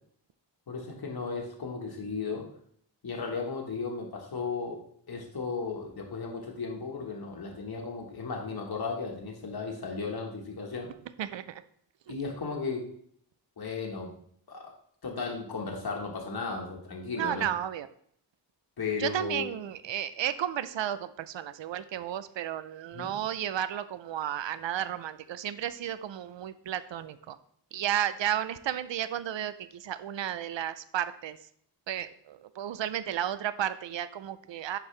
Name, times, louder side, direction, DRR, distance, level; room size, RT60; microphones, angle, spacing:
voice 1, 0.7-2.5 3.0-10.9 12.1-12.9 13.6-14.1 14.5-14.7 15.0-17.5 18.8-19.5 22.9-23.2, left 4 dB, 55° left, 0 dB, 1.3 m, -35 dB
voice 2, 11.2-11.6 17.1-17.9 19.0-27.4 27.7-31.4 31.9-34.8, right 10 dB, 80° right, 13 dB, 0.5 m, -33 dB
11.0 x 4.7 x 3.2 m, 0.64 s
wide cardioid pair, 120°, 44 cm